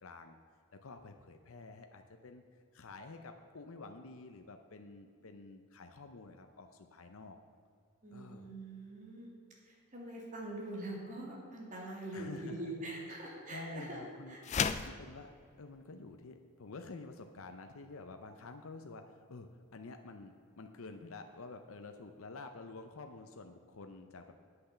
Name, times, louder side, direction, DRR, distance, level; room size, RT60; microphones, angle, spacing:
voice 1, 0.0-0.4 0.7-2.4 2.7-7.4 8.1-8.5 12.1-12.6 13.1-13.2 13.5-14.4 14.7-15.3 15.6-24.3, left 3 dB, 70° left, 6 dB, 0.6 m, -49 dB
voice 2, 8.0-9.3 9.6-14.0 14.3-14.4, right 1 dB, 35° right, -2 dB, 2.4 m, -44 dB
sound 1, 14.4-15.0, left 6 dB, 30° left, 0.3 m, -32 dB
8.8 x 8.0 x 6.8 m, 2.3 s
head